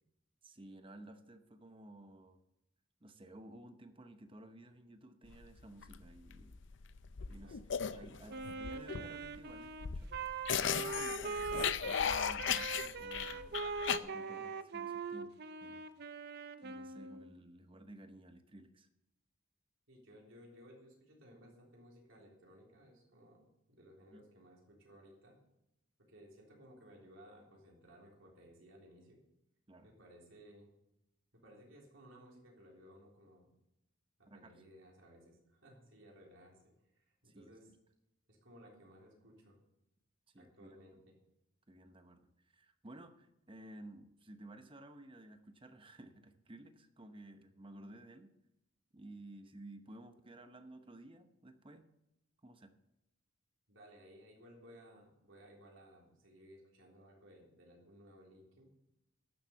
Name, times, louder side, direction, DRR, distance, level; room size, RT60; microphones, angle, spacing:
voice 1, 0.4-2.4 3.0-6.5 7.3-7.6 7.9-10.1 10.6-13.6 14.0-15.3 15.6-15.9 16.6-18.9 24.1-24.2 29.7-29.9 34.3-34.6 37.2-37.5 40.3-40.8 41.7-48.3 48.9-51.9 52.4-52.7, right 1 dB, 25° right, 8 dB, 0.9 m, -54 dB
sound 1, 5.3-14.0, left 8 dB, 60° left, 0.5 m, -37 dB
Wind instrument woodwind instrument, 8.3-17.3, right 4 dB, 50° right, 0.6 m, -42 dB
voice 2, 14.3-14.6 19.9-25.4 26.0-29.2 29.8-30.7 31.3-33.5 34.2-37.7 38.3-39.6 40.4-41.1 53.7-58.7, equal, 65° right, -1 dB, 3.6 m, -59 dB
12.0 x 7.3 x 7.0 m, 0.85 s
head